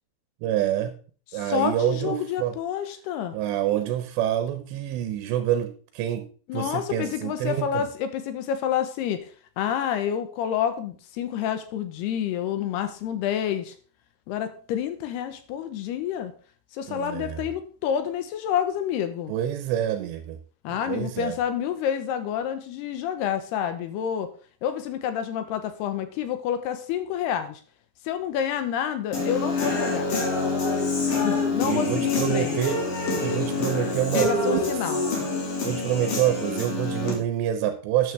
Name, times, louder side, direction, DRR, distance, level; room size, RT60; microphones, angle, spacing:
voice 1, 0.4-0.9 1.3-2.5 3.3-7.8 16.9-17.4 19.3-20.4 20.7-21.4 31.6-32.8 33.2-34.8 35.6-38.1, right 11 dB, 90° right, 9 dB, 3.1 m, -27 dB
voice 2, 1.3-3.4 6.5-13.8 14.3-16.3 16.7-19.3 20.6-24.3 24.6-27.6 28.1-30.1 31.2-32.7 34.1-35.0, left 9 dB, 80° left, 9 dB, 2.9 m, -28 dB
Human voice / Guitar, 29.1-37.1, left 3 dB, 50° left, 3.7 m, -26 dB
12.5 x 9.0 x 3.4 m, 0.40 s
omnidirectional pair, 4.8 m